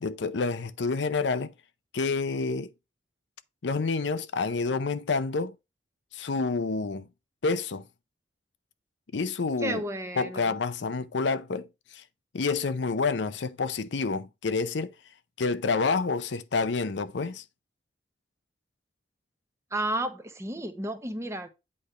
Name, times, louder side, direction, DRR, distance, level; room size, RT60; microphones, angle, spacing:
voice 1, 0.0-1.5 1.9-2.7 3.6-5.5 6.1-7.1 7.4-7.8 9.1-9.8 10.2-11.7 11.9-12.0 12.3-14.9 15.4-17.4, left 4 dB, 80° left, 0.6 m, -28 dB
voice 2, 9.6-10.6 19.7-21.5, right 1 dB, 15° right, 0.9 m, -32 dB
8.4 x 3.3 x 5.4 m
head